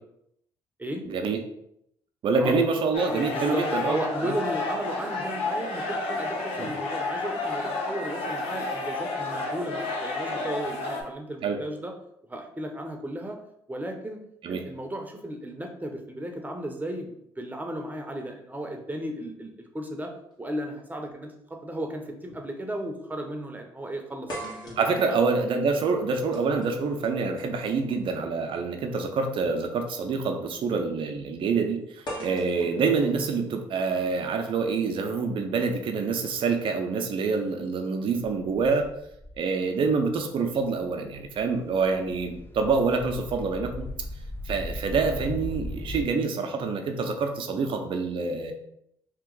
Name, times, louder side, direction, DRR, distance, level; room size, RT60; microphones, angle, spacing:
voice 1, 1.1-1.4 2.2-4.0 4.2-4.3 6.6-6.7 11.4-11.6 14.4-14.6 24.8-38.9 39.4-44.1 44.4-48.5, right 4 dB, 60° right, 5 dB, 0.6 m, -26 dB
sound 1, 2.9-11.0, left 2 dB, 75° left, 0.7 m, -31 dB
voice 2, 3.3-11.9 12.3-13.4 13.7-14.2 14.5-20.1 20.4-25.2, right 1 dB, 15° right, 3 dB, 0.8 m, -35 dB
sound 2, 22.3-22.5 22.8-22.9 24.3-28.3 29.5-29.7 32.1-34.1, equal, 45° left, 1.3 m, -42 dB
sound 3, 38.4-39.4 40.0-40.1 40.4-46.0, left 1 dB, 20° left, 0.6 m, -38 dB
2.9 x 2.5 x 3.8 m, 0.77 s
hypercardioid pair, 55°, 10 cm